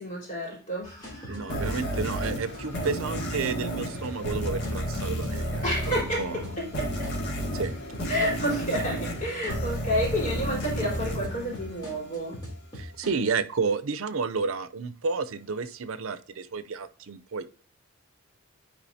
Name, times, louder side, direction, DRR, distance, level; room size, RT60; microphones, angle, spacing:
voice 1, 0.0-1.2 5.6-6.4 6.8-6.9 8.1-12.4, equal, 40° left, -5 dB, 3.9 m, -30 dB
sound 1, 0.8-13.1, equal, 20° left, 3.3 m, -41 dB
voice 2, 1.3-5.7 6.0-6.4 7.5-7.8 12.7-17.5, right 4 dB, 75° right, 13 dB, 0.6 m, -31 dB
sound 2, 1.5-12.3, equal, 60° left, 2.4 m, -32 dB
10.5 x 5.0 x 2.7 m, 0.43 s
head